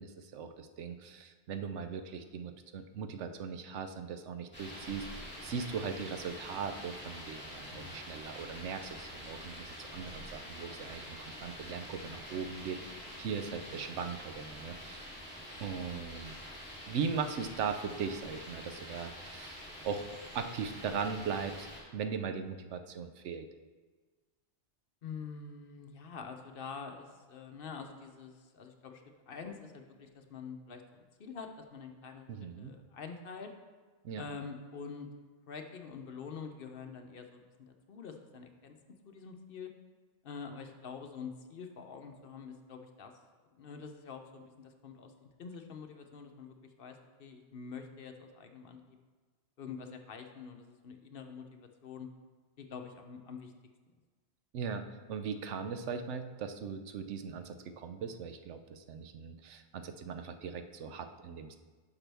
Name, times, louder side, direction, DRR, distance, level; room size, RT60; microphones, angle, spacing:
voice 1, 0.0-15.1 15.6-16.3 16.9-20.1 20.3-21.7 21.9-23.5 32.3-32.7 34.0-34.2 54.5-61.6, right 6 dB, 90° right, 8 dB, 1.0 m, -39 dB
sound 1, 4.5-21.8, equal, 10° left, 2.4 m, -46 dB
voice 2, 7.7-8.0 13.7-13.9 25.0-32.3 32.6-33.5 34.1-35.1 35.5-38.8 39.0-39.7 40.2-43.1 43.6-49.0 49.6-52.1 52.6-53.5, left 5 dB, 60° left, 5 dB, 0.8 m, -46 dB
10.0 x 6.0 x 3.4 m, 1.4 s
omnidirectional pair, 1.2 m